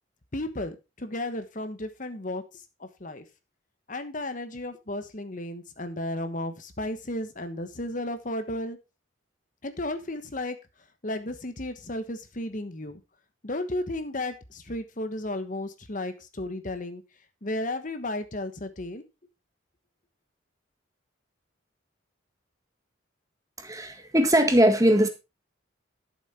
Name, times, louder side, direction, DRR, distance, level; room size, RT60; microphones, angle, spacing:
voice 1, 0.3-2.4 2.8-3.2 3.9-8.8 9.6-10.6 11.0-13.0 13.4-17.0 17.4-19.0, left 1 dB, 40° left, 10 dB, 1.2 m, -33 dB
voice 2, 23.6-25.1, right 1 dB, 15° right, 7 dB, 1.7 m, -20 dB
12.5 x 7.2 x 4.3 m, 0.26 s
head